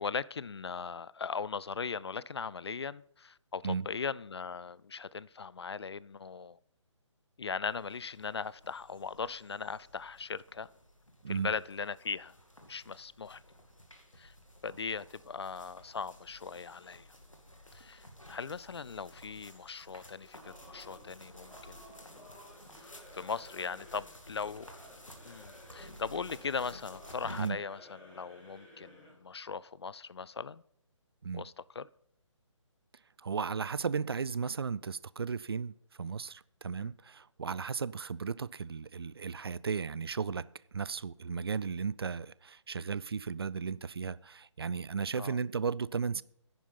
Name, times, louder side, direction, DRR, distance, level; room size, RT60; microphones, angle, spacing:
voice 1, 0.0-6.6 7.4-10.7 11.3-12.4 12.6-13.4 14.2-14.3 14.6-17.1 17.7-21.8 22.1-22.3 22.8-24.7 25.2-30.6 31.3-31.9 36.8-36.9 45.2-45.4, left 5 dB, 55° left, 0.4 m, -39 dB
sound 1, 7.6-27.5, equal, 85° left, 2.4 m, -54 dB
Singing / Musical instrument, 20.4-29.3, left 1 dB, 10° left, 3.5 m, -55 dB
voice 2, 33.2-40.5 40.7-46.2, right 5 dB, 50° right, 0.4 m, -35 dB
10.5 x 9.3 x 5.7 m
figure-of-eight pair, 140°, 16 cm